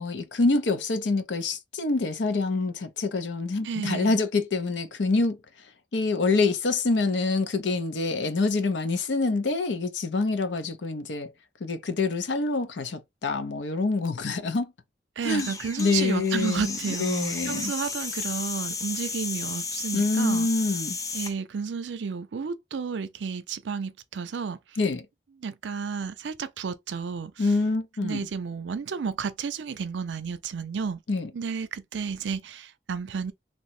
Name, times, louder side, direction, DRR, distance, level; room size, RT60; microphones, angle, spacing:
voice 1, 0.0-5.4 5.9-11.3 11.6-14.7 15.2-15.5 15.8-17.7 19.9-21.0 24.8-25.1 27.4-28.3 31.1-31.3, left 3 dB, 90° left, 0.6 m, -26 dB
voice 2, 3.6-4.2 15.2-20.5 21.1-24.6 25.4-27.4 28.0-31.0 31.3-33.3, right 5 dB, 90° right, 0.5 m, -32 dB
sound 1, 15.2-21.3, left 4 dB, 20° left, 0.5 m, -34 dB
3.0 x 2.1 x 4.1 m
head